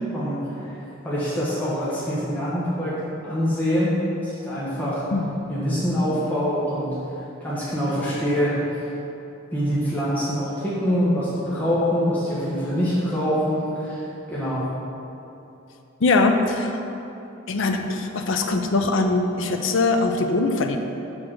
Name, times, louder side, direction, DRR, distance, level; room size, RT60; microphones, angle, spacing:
voice 1, 0.1-3.0 3.2-5.0 5.5-6.9 7.4-8.6 9.5-14.6, equal, 10° left, -10 dB, 1.1 m, -25 dB
voice 2, 16.0-16.8 17.5-20.8, left 3 dB, 60° left, 5 dB, 0.5 m, -22 dB
6.3 x 6.2 x 3.8 m, 2.9 s
head